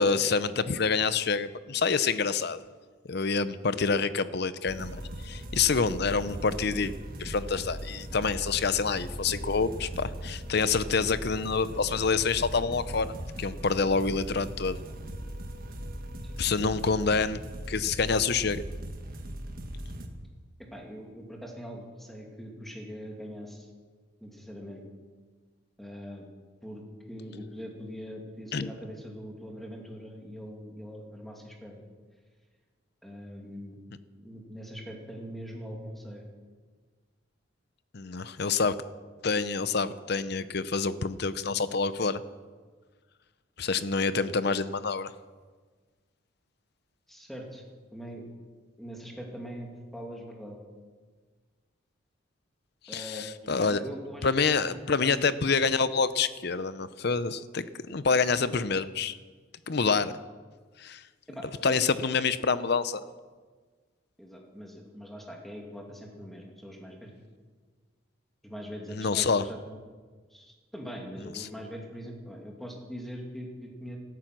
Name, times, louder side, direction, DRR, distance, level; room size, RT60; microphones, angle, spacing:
voice 1, 0.0-2.6 3.1-6.9 7.2-14.8 16.4-17.4 17.7-18.6 28.5-28.7 37.9-38.7 39.2-42.2 43.6-45.1 52.9-53.8 54.2-59.2 59.7-60.1 60.8-61.0 61.6-63.0 68.9-69.4 71.4-71.5, left 4 dB, 55° left, 14 dB, 0.7 m, -27 dB
sound 1, 4.7-20.1, equal, 45° right, 1.5 m, -39 dB
voice 2, 20.7-23.7 24.2-24.8 25.8-26.2 26.6-31.8 33.0-33.8 34.2-36.2 47.1-47.6 47.9-48.3 48.8-50.6 52.9-53.3 53.6-55.6 61.3-61.8 64.2-67.1 68.4-69.8 70.3-74.0, equal, ahead, 0 dB, 2.5 m, -42 dB
17.0 x 13.5 x 6.1 m, 1.5 s
head